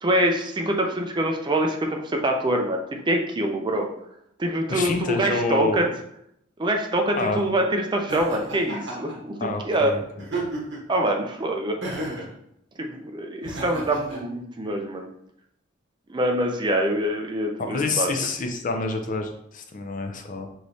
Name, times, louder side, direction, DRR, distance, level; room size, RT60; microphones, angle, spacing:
voice 1, 0.0-3.9 4.4-5.8 6.6-9.9 10.9-11.8 12.8-15.1 16.1-18.1, right 1 dB, 25° right, 3 dB, 0.4 m, -25 dB
voice 2, 4.7-5.9 7.1-7.4 9.4-10.3 17.6-20.5, left 3 dB, 45° left, 4 dB, 0.5 m, -27 dB
Laughter, 8.1-9.2 10.2-10.9 11.8-12.3 13.4-14.2, right 2 dB, 65° right, 1.2 m, -32 dB
4.8 x 3.0 x 2.7 m, 0.74 s
head